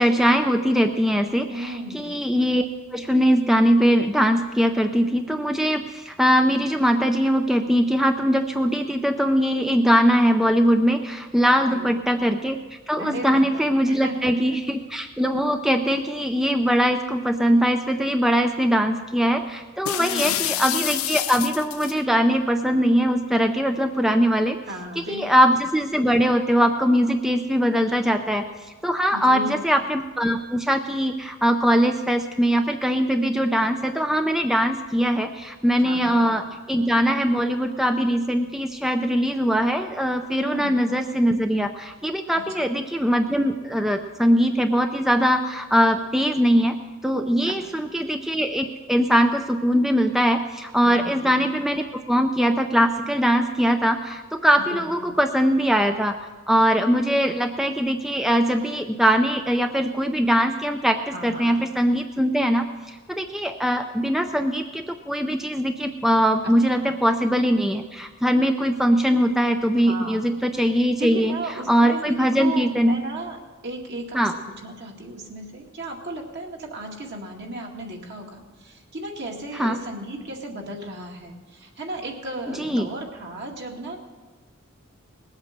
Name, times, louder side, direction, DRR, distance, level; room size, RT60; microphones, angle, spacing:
voice 1, 0.0-2.6 2.9-24.6 25.1-28.5 28.8-46.8 47.0-56.2 56.5-71.3 71.7-73.0 74.1-74.3 79.6-79.8 82.6-82.9, equal, ahead, 6 dB, 0.4 m, -21 dB
voice 2, 1.5-2.0 11.7-12.0 13.0-14.6 20.0-20.4 24.7-25.4 29.1-29.7 35.8-36.4 40.4-40.8 42.3-42.7 47.4-47.9 50.8-51.6 54.7-55.0 61.1-61.6 66.4-66.9 69.7-70.3 71.0-73.4 73.6-84.0, right 1 dB, 55° right, 1 dB, 2.1 m, -35 dB
sound 1, 19.9-22.0, left 15 dB, 75° left, 0.4 m, -27 dB
19.5 x 8.1 x 6.6 m, 1.3 s
head